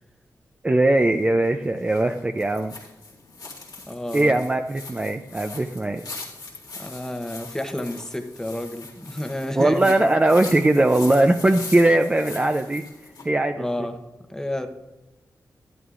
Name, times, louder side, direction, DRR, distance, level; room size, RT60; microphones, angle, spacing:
voice 1, 0.6-2.7 4.1-6.0 9.6-12.8 13.2-13.7, right 2 dB, 20° right, 6 dB, 0.4 m, -20 dB
sound 1, 1.0-13.3, left 3 dB, 90° left, 2.2 m, -41 dB
voice 2, 3.9-4.3 6.8-10.0 13.6-13.9 14.3-14.7, left 1 dB, 10° left, 7 dB, 0.9 m, -30 dB
12.0 x 11.0 x 2.5 m, 1.1 s
wide cardioid pair, 90°, 7 cm